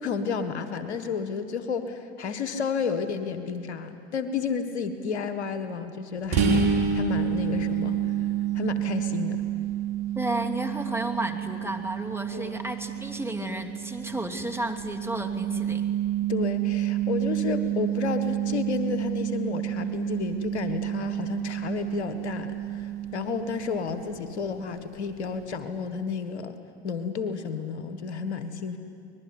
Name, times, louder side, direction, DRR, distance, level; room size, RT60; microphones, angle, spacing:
voice 1, 0.0-7.9 8.5-9.4 12.3-12.6 16.3-26.5 26.8-28.8, left 6 dB, 90° left, 9 dB, 1.7 m, -31 dB
sound 1, 6.3-23.8, right 9 dB, 60° right, 4.1 m, -29 dB
voice 2, 10.1-15.8, right 1 dB, 5° right, 4 dB, 2.7 m, -32 dB
24.5 x 20.5 x 9.7 m, 2.4 s
hypercardioid pair, 70°, 32 cm